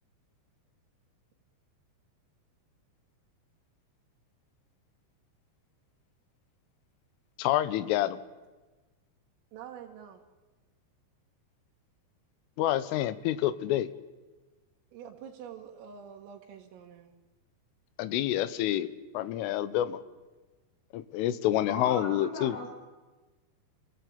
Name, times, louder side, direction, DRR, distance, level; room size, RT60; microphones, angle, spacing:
voice 1, 7.4-8.2 12.6-13.9 18.0-18.9 19.2-20.0 20.9-22.6, left 13 dB, 80° left, 15 dB, 3.5 m, -28 dB
voice 2, 9.5-10.2 14.9-17.1, right 8 dB, 80° right, 0 dB, 4.3 m, -46 dB
voice 3, 21.7-22.7, left 2 dB, 55° left, -1 dB, 6.8 m, -38 dB
29.0 x 18.0 x 8.7 m, 1.2 s
omnidirectional pair, 5.9 m